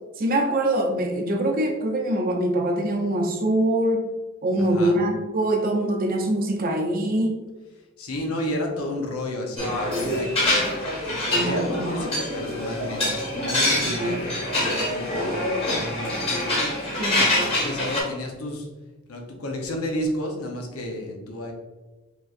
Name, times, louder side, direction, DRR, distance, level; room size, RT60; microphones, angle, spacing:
voice 1, 0.2-4.1 4.4-7.4 11.3-11.6 13.9-14.2 17.0-17.2, right 1 dB, 40° right, 3 dB, 0.6 m, -23 dB
voice 2, 4.6-5.0 7.7-10.6 11.1-16.4 17.1-18.7 19.1-21.5, left 1 dB, 80° left, 1 dB, 0.8 m, -32 dB
sound 1, 9.6-18.0, left 1 dB, 25° left, 1.4 m, -25 dB
5.1 x 3.0 x 2.5 m, 1.2 s
head